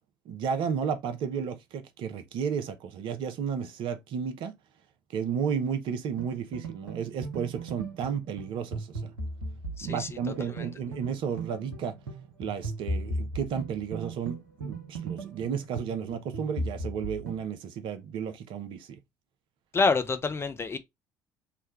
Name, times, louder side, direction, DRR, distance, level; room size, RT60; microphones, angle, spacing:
voice 1, 0.3-4.5 5.1-9.1 9.8-11.9 12.4-19.0, right 7 dB, 55° right, 0.6 m, -33 dB
sound 1, 6.2-17.4, right 2 dB, 80° right, 0.9 m, -37 dB
voice 2, 9.8-10.1 10.5-10.7 19.7-20.8, left 4 dB, 25° left, 0.5 m, -27 dB
3.4 x 2.2 x 3.1 m
figure-of-eight pair, 55°, 10 cm